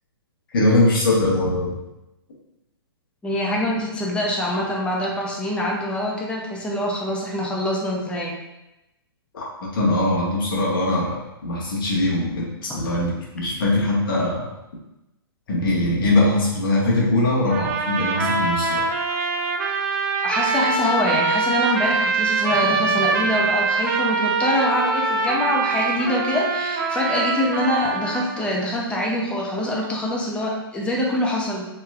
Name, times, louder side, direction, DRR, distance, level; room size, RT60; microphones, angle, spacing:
voice 1, 0.5-1.7 9.3-9.5 9.7-14.4 15.5-18.8, left 2 dB, 60° left, -4 dB, 1.1 m, -21 dB
voice 2, 3.2-8.4 14.1-14.2 20.2-31.6, left 1 dB, 10° left, -3 dB, 0.5 m, -24 dB
sound 1, 17.5-28.5, right 4 dB, 40° right, 0.4 m, -23 dB
3.2 x 2.8 x 2.3 m, 0.93 s
hypercardioid pair, 130°, 13 cm